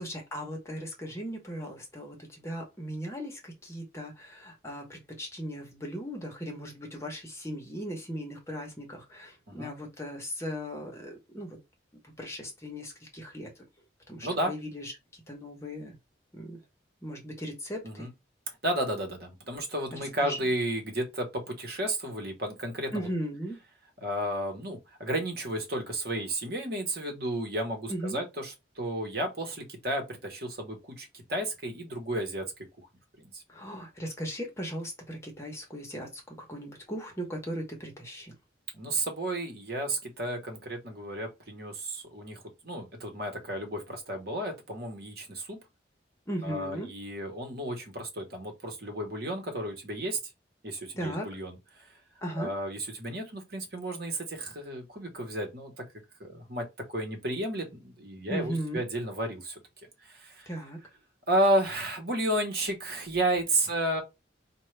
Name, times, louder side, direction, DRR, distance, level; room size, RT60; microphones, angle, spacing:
voice 1, 0.0-11.6 12.2-13.5 14.1-16.0 16.3-16.6 17.0-18.1 19.9-20.5 22.9-23.6 27.9-28.2 33.5-38.3 46.3-46.9 51.0-51.3 52.2-52.5 58.3-58.8 60.5-60.8, equal, 15° left, 1.0 m, -37 dB
voice 2, 14.2-14.5 17.8-18.1 18.6-23.1 24.0-32.5 33.2-33.4 38.7-45.6 46.4-50.2 50.6-51.9 52.4-55.7 56.2-59.6 60.0-60.5 61.3-64.0, right 1 dB, 55° right, 1.1 m, -32 dB
4.5 x 2.3 x 3.2 m
head